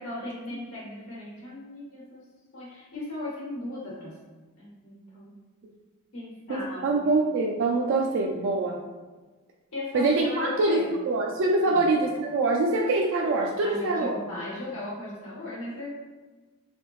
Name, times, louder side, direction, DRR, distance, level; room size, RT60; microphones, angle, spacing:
voice 1, 0.0-2.2 2.5-4.1 4.6-5.3 6.1-7.1 9.7-10.9 11.6-11.9 13.6-15.9, left 1 dB, 80° left, -6 dB, 1.0 m, -37 dB
voice 2, 6.5-8.8 9.9-10.8 11.1-14.2, right 2 dB, 60° right, 0 dB, 0.3 m, -24 dB
3.3 x 2.6 x 3.0 m, 1.3 s
head